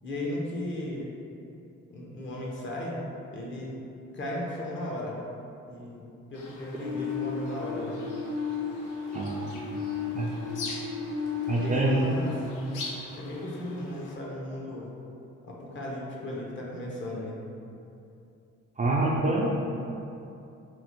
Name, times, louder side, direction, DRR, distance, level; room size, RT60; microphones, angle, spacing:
voice 1, 0.0-1.2 1.9-3.0 3.3-3.7 4.1-5.2 5.6-8.0 11.5-12.3 13.1-15.0 15.5-17.4, left 1 dB, 40° left, -4 dB, 0.8 m, -35 dB
sound 1, 6.3-14.2, left 3 dB, 85° left, 0.6 m, -44 dB
sound 2, 6.8-13.6, left 5 dB, 65° right, 0.7 m, -35 dB
voice 2, 9.1-9.6 10.1-10.3 11.5-12.0 18.8-19.5, right 2 dB, 25° right, -4 dB, 0.3 m, -26 dB
4.4 x 2.0 x 2.9 m, 2.7 s
cardioid pair, 90°, 30 cm